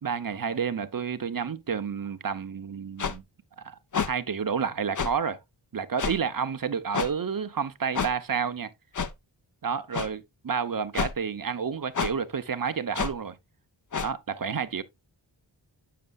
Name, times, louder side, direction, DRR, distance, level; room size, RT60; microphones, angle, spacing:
voice 1, 0.0-3.2 3.6-3.7 4.1-5.4 5.7-8.7 9.6-13.4 14.0-14.8, right 6 dB, 45° right, 0.8 m, -30 dB
sound 1, 3.0-3.2 3.9-4.1 5.0-5.1 6.0-6.2 6.9-7.1 7.9-8.1 8.9-9.1 9.9-10.1 10.9-11.1 11.9-12.1 12.9-13.1 13.9-14.1, left 5 dB, 40° left, 0.6 m, -28 dB
8.6 x 6.7 x 2.3 m
wide cardioid pair, 80°, 45 cm